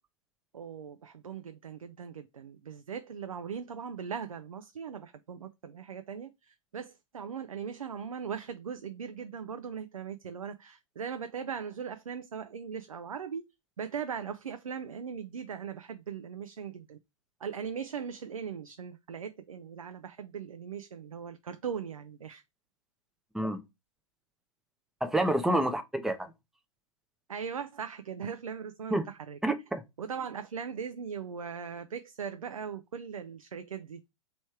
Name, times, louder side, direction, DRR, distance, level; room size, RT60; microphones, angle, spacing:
voice 1, 0.5-13.5 13.8-17.0 17.4-22.4 25.5-25.6 27.3-29.4 30.0-34.0, right 7 dB, 75° right, 0.4 m, -39 dB
voice 2, 25.0-26.3 28.9-29.0 29.4-29.8, right 1 dB, ahead, 0.5 m, -28 dB
3.2 x 3.0 x 4.6 m
figure-of-eight pair, 110°, 18 cm